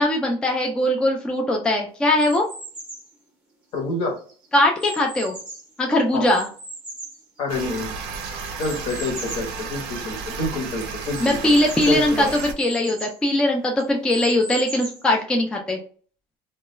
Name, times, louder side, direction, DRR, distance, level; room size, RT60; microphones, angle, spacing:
voice 1, 0.0-2.5 4.5-5.4 5.8-6.5 11.2-15.8, left 1 dB, 5° left, 1 dB, 0.3 m, -20 dB
sound 1, 2.2-3.1 3.8-5.8 6.2-7.9 8.6-9.5 10.0-10.1 10.3-10.4 11.1-13.2 13.8-15.1, right 2 dB, 10° right, 0.7 m, -38 dB
voice 2, 3.7-4.2 6.1-6.3 7.4-7.9 8.6-11.6 11.9-12.3, left 2 dB, 55° left, 2 dB, 0.9 m, -27 dB
sound 2, 7.5-12.5, right 5 dB, 80° right, 0.5 m, -33 dB
2.2 x 2.2 x 3.0 m, 0.42 s
cardioid pair, 155°, 12 cm